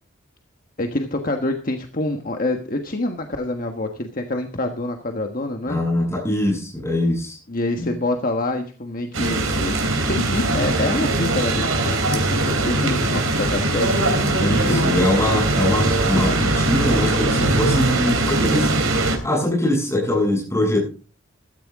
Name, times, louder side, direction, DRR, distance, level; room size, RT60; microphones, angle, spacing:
voice 1, 0.8-5.8 7.5-9.8 10.1-14.8 16.1-16.3, left 2 dB, 45° left, 4 dB, 1.3 m, -26 dB
voice 2, 5.7-7.4 7.8-7.9 14.4-18.7 19.2-20.8, left 1 dB, 15° left, -1 dB, 7.7 m, -22 dB
sound 1, 9.1-19.2, right 2 dB, 90° right, 3.5 m, -21 dB
15.5 x 13.5 x 3.6 m, 0.36 s
head